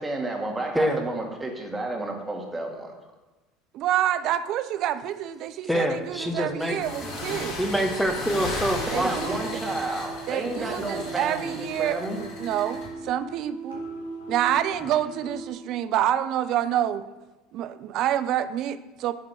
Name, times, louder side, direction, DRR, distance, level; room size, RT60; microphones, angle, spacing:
voice 1, 0.0-2.9 8.9-12.2, right 2 dB, 15° right, 1 dB, 2.0 m, -31 dB
voice 2, 3.7-7.5 8.9-9.4 10.3-13.8 14.3-17.1 17.5-19.1, right 11 dB, 55° right, 12 dB, 0.5 m, -27 dB
voice 3, 5.6-6.8 7.6-9.1 10.7-10.8, equal, ahead, 5 dB, 1.3 m, -25 dB
sound 1, 6.1-15.5, right 2 dB, 80° left, 2.0 m, -40 dB
sound 2, 6.6-12.9, left 2 dB, 55° left, 3.0 m, -36 dB
10.0 x 3.7 x 6.5 m, 1.2 s
hypercardioid pair, 75°, 0 cm